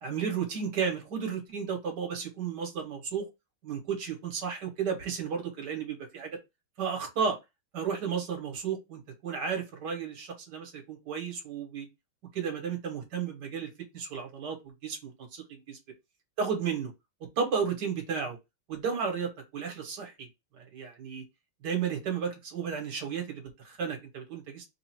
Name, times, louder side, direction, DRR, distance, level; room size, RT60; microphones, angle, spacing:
voice 1, 0.0-3.3 3.6-6.4 6.8-7.4 7.7-11.9 12.3-15.8 16.4-16.9 17.2-18.4 18.7-20.3 20.6-21.2 21.6-24.6, right 6 dB, 55° right, 1.7 m, -33 dB
3.8 x 2.4 x 4.4 m
omnidirectional pair, 2.3 m